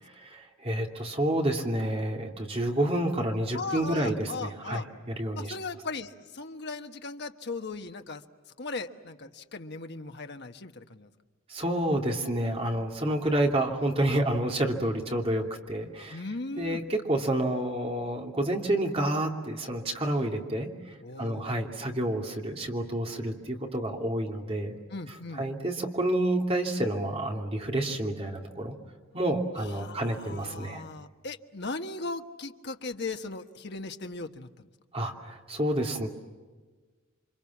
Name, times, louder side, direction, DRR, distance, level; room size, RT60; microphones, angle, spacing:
voice 1, 0.2-5.5 11.5-16.2 16.6-20.7 21.2-24.8 25.1-28.7 29.1-30.8 34.9-36.1, right 1 dB, 30° right, 2 dB, 2.9 m, -29 dB
voice 2, 3.5-4.9 5.4-8.2 8.6-11.1 16.1-16.8 21.0-21.5 24.9-25.4 29.7-34.5, left 3 dB, 55° left, 6 dB, 1.4 m, -38 dB
29.0 x 25.5 x 7.3 m, 1.3 s
head